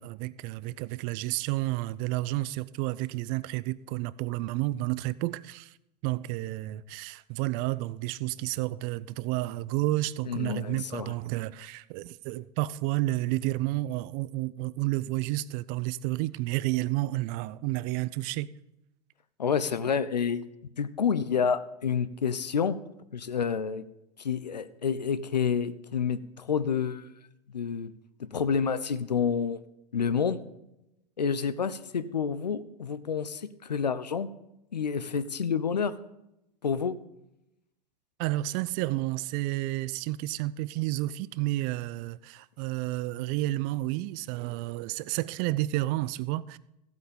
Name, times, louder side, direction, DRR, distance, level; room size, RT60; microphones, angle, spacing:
voice 1, 0.0-5.7 6.0-18.5 38.2-46.6, right 17 dB, 45° right, 0.5 m, -31 dB
voice 2, 10.3-11.1 19.4-20.4 20.8-22.8 23.1-23.9 24.2-27.1 27.5-27.9 28.2-29.6 29.9-30.4 31.2-34.3 34.7-35.9 36.6-37.0, left 6 dB, 90° left, 0.7 m, -29 dB
14.5 x 8.1 x 5.2 m
hypercardioid pair, 95°, 21 cm